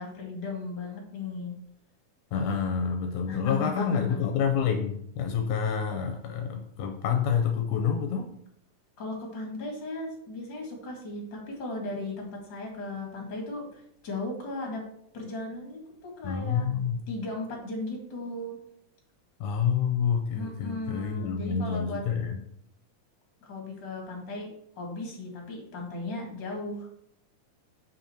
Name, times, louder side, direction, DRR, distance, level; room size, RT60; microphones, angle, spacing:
voice 1, 0.0-1.6 3.3-4.2 9.0-14.8 15.1-16.6 17.1-18.5 20.3-22.0 23.4-27.0, left 2 dB, 40° left, 0 dB, 2.3 m, -36 dB
voice 2, 2.3-8.3 16.2-17.0 19.4-22.4, left 7 dB, 80° left, 4 dB, 2.0 m, -28 dB
7.2 x 5.4 x 4.3 m, 0.72 s
omnidirectional pair, 3.7 m